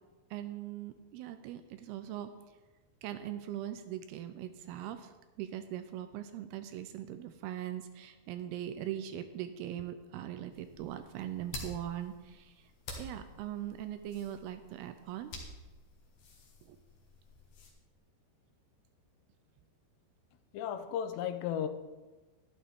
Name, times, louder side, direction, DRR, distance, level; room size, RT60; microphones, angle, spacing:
voice 1, 0.3-2.3 3.0-12.7 13.0-15.4 16.6-16.8, right 11 dB, 80° right, 10 dB, 2.4 m, -41 dB
sound 1, 10.5-17.7, left 2 dB, 55° left, 2.2 m, -49 dB
voice 2, 20.5-21.7, left 9 dB, 90° left, 10 dB, 2.9 m, -34 dB
12.0 x 11.0 x 3.6 m, 1.2 s
omnidirectional pair, 4.8 m